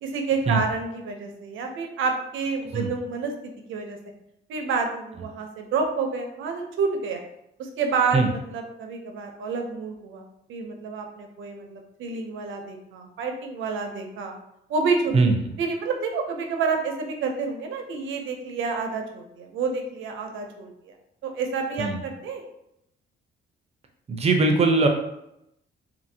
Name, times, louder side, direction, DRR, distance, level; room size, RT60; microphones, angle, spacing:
voice 1, 0.0-4.0 4.5-7.2 7.6-14.3 14.7-15.2 15.6-20.9 21.2-22.4, right 4 dB, 75° right, 3 dB, 0.6 m, -29 dB
voice 2, 24.1-24.9, right 3 dB, 30° right, 3 dB, 0.6 m, -20 dB
2.7 x 2.6 x 2.7 m, 0.81 s
cardioid pair, 90°, 20 cm